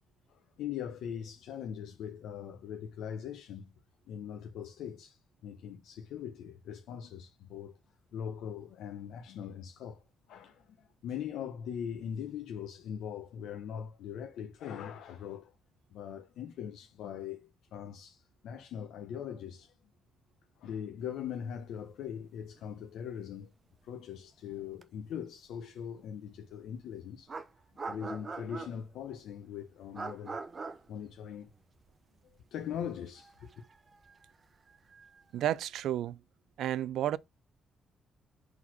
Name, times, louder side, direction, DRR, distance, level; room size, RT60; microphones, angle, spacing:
voice 1, 0.3-3.7 4.1-7.8 8.1-10.0 10.3-15.5 15.9-19.7 20.6-23.5 23.8-27.3 27.9-30.4 30.9-31.5 32.5-33.6, left 8 dB, 80° left, 0.9 m, -41 dB
sound 1, 22.1-22.2 22.5-22.6 24.8-24.9 26.7-26.8 27.3-29.0 29.9-31.9 32.2-32.3 33.1-35.4, right 4 dB, 35° right, 0.9 m, -43 dB
voice 2, 35.3-36.2 36.6-37.2, right 12 dB, 80° right, 0.4 m, -31 dB
4.8 x 4.1 x 5.8 m
cardioid pair, 90°, 0 cm